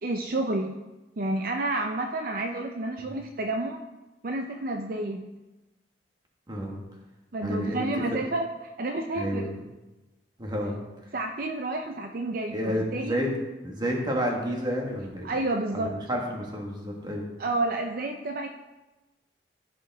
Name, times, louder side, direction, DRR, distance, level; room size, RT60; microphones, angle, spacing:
voice 1, 0.0-0.7 1.2-3.8 4.2-5.2 7.3-8.5 8.8-9.5 11.1-13.2 15.2-15.9 17.4-18.5, right 2 dB, 55° right, 3 dB, 0.6 m, -30 dB
voice 2, 6.5-6.8 7.4-8.1 9.1-9.6 10.4-10.8 12.5-15.3 15.7-17.3, equal, 25° right, 0 dB, 1.6 m, -30 dB
14.5 x 5.4 x 3.5 m, 1.1 s
head